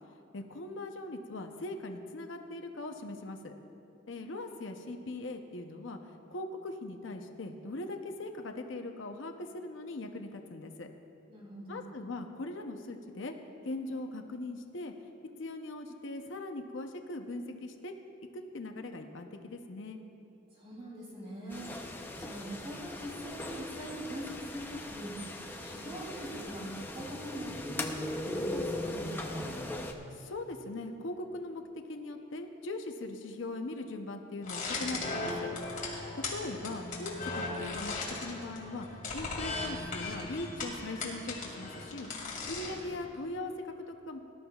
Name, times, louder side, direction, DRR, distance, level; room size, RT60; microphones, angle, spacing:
voice 1, 0.3-3.5 4.1-6.0 6.3-10.9 11.7-13.3 13.7-14.9 15.4-17.9 18.5-20.0 30.1-35.5 36.1-38.9 39.1-42.1 42.4-44.2, left 2 dB, 70° left, 5 dB, 0.7 m, -40 dB
voice 2, 11.3-11.9 20.5-25.2 25.6-29.5, equal, 30° right, -4 dB, 3.1 m, -43 dB
sound 1, 21.5-29.9, left 1 dB, 10° left, 0.6 m, -39 dB
sound 2, 34.4-42.9, left 3 dB, 40° left, 2.3 m, -38 dB
19.0 x 12.0 x 2.3 m, 2.7 s
head